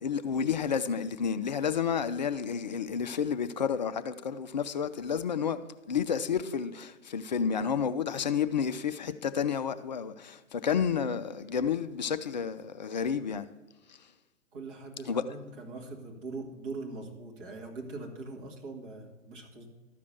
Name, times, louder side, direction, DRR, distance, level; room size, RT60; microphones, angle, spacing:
voice 1, 0.0-5.6 5.9-13.5 13.9-14.0 15.1-15.2, left 7 dB, 35° left, 0.4 m, -30 dB
voice 2, 14.5-19.7, right 3 dB, 40° right, 1.9 m, -42 dB
13.0 x 5.0 x 6.6 m
figure-of-eight pair, 120°, 39 cm